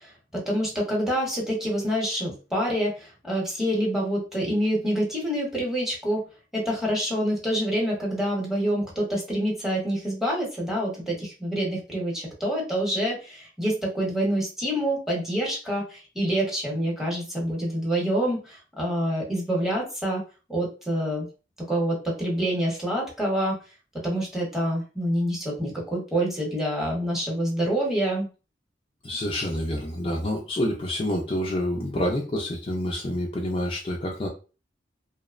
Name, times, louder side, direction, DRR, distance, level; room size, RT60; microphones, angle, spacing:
voice 1, 0.0-6.2 6.5-20.2 20.5-21.3 21.7-23.6 24.0-28.3, equal, 5° right, -3 dB, 0.9 m, -27 dB
voice 2, 29.0-34.3, left 1 dB, 30° left, -1 dB, 0.4 m, -28 dB
2.7 x 2.0 x 2.4 m, 0.34 s
head